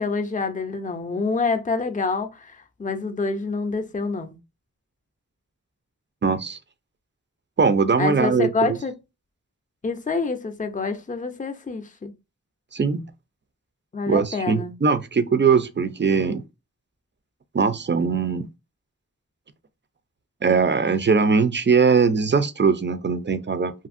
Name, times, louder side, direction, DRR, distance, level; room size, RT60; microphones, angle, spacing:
voice 1, 0.0-4.4 8.0-8.9 9.8-12.1 13.9-14.7, left 4 dB, 25° left, 0.5 m, -27 dB
voice 2, 6.2-6.6 7.6-8.8 12.7-13.0 14.1-16.4 17.5-18.5 20.4-23.7, right 5 dB, 35° right, 0.4 m, -20 dB
2.7 x 2.5 x 2.5 m
wide cardioid pair, 40°, 34 cm